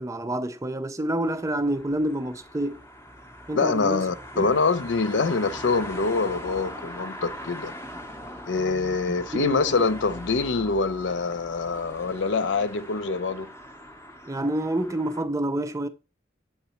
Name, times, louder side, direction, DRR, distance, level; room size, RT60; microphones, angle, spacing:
voice 1, 0.0-2.8 3.5-4.0 4.4-4.5 9.1-9.9 14.3-15.9, right 1 dB, 15° right, 0.5 m, -28 dB
sound 1, 1.2-15.2, equal, 15° left, 0.8 m, -41 dB
voice 2, 3.5-7.7 8.5-13.5, left 4 dB, 70° left, 0.5 m, -25 dB
7.9 x 4.0 x 4.3 m
head